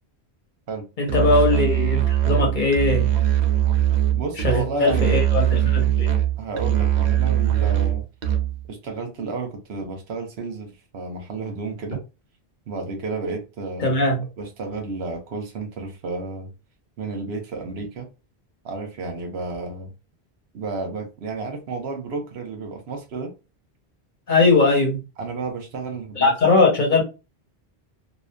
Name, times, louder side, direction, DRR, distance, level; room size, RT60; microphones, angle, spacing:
voice 1, 1.0-3.1 4.4-6.1 13.8-14.2 24.3-25.0 26.2-27.0, left 3 dB, 50° left, 0.9 m, -20 dB
Musical instrument, 1.1-8.7, right 11 dB, 55° right, 0.5 m, -21 dB
voice 2, 4.1-5.2 6.4-8.0 8.7-12.0 12.7-16.5 17.0-18.1 18.6-19.9 20.5-23.3 25.2-26.3, right 3 dB, 75° right, 1.0 m, -32 dB
2.8 x 2.2 x 2.2 m
omnidirectional pair, 1.1 m